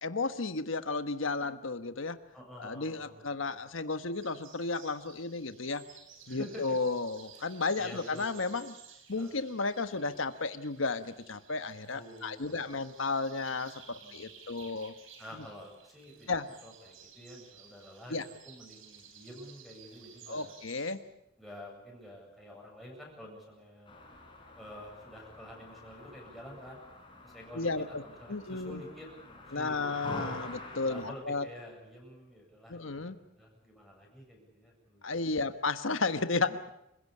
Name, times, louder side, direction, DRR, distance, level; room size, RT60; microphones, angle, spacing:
voice 1, 0.0-2.2 2.6-5.8 6.3-8.7 9.1-14.9 16.3-16.5 18.1-18.2 20.3-21.0 27.5-28.0 28.3-28.8 29.5-31.5 32.7-33.2 35.0-36.6, left 3 dB, 85° left, 10 dB, 1.3 m, -33 dB
voice 2, 2.3-3.6 6.3-6.8 7.8-8.4 9.2-9.4 11.9-12.7 13.9-14.7 15.2-20.5 21.4-24.0 24.6-26.8 27.2-29.8 30.8-35.2, equal, ahead, -3 dB, 7.9 m, -49 dB
sound 1, 4.1-20.9, right 7 dB, 90° right, 4.2 m, -55 dB
sound 2, 23.9-31.1, left 2 dB, 25° left, 4.8 m, -46 dB
28.5 x 16.5 x 8.6 m, 0.85 s
head